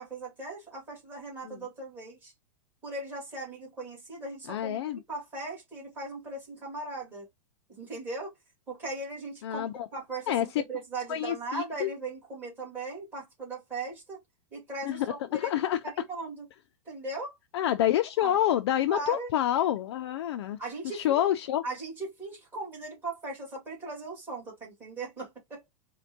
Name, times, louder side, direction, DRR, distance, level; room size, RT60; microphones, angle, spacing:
voice 1, 0.0-2.3 2.8-7.3 7.8-8.3 8.7-14.2 14.5-15.5 15.8-16.5 16.9-17.4 18.2-18.3 18.9-19.3 20.6-21.2 21.6-25.7, right 3 dB, 10° right, 1.7 m, -38 dB
voice 2, 4.5-5.0 9.4-9.9 10.3-10.5 11.1-11.9 14.8-15.8 17.5-20.6 20.8-21.6, left 12 dB, 55° left, 0.4 m, -28 dB
4.3 x 2.2 x 2.6 m
supercardioid pair, 170°, 17 cm